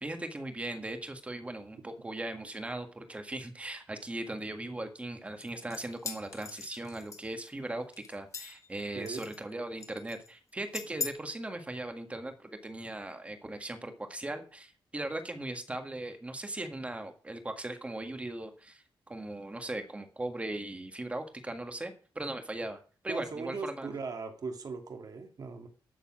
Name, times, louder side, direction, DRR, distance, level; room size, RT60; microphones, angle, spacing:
voice 1, 0.0-23.9, right 1 dB, 15° right, 6 dB, 1.6 m, -39 dB
sound 1, 5.4-7.5 7.9-8.7 9.1-9.5 9.8-10.3 10.7-11.1, left 4 dB, 35° left, 1.5 m, -40 dB
voice 2, 8.9-9.3 23.1-25.7, right 4 dB, 50° right, 5 dB, 2.1 m, -39 dB
11.5 x 7.0 x 6.1 m, 0.39 s
wide cardioid pair, 170°, 8 cm